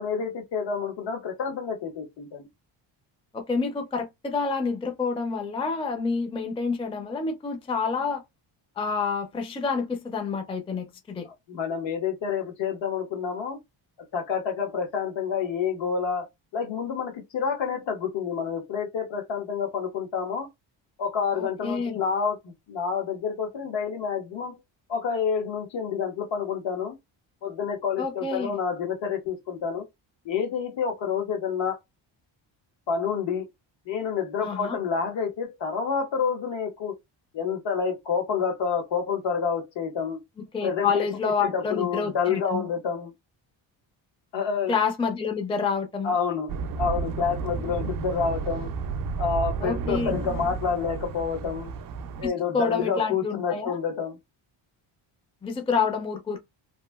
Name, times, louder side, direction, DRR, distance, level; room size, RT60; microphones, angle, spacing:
voice 1, 0.0-2.5 11.2-13.6 14.1-16.3 16.5-20.5 21.0-24.6 24.9-26.9 27.4-29.8 30.2-31.8 32.9-33.5 33.9-36.9 37.3-40.2 40.6-40.9 41.4-43.1 44.3-44.8 46.0-48.7 49.2-51.7 52.2-54.2, left 6 dB, 70° left, 1.2 m, -28 dB
voice 2, 3.3-8.2 8.8-11.3 21.3-22.0 28.0-28.6 34.4-34.8 40.5-42.7 44.7-46.1 49.6-50.2 52.2-53.8 55.4-56.4, left 5 dB, 15° left, 0.4 m, -28 dB
sound 1, 46.5-52.3, right 5 dB, 50° right, 0.4 m, -32 dB
2.9 x 2.5 x 2.2 m
cardioid pair, 125°, 46 cm